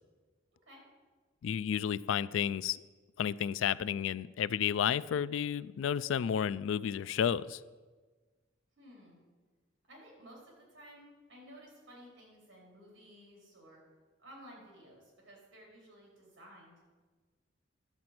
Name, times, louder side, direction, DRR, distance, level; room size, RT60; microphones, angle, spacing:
voice 1, 0.5-0.8 8.8-9.2 9.9-13.8 14.2-16.8, equal, 65° right, -2 dB, 4.2 m, -55 dB
voice 2, 1.4-2.8 3.2-7.6, left 8 dB, 75° left, 18 dB, 0.3 m, -32 dB
11.0 x 7.7 x 6.0 m, 1.4 s
head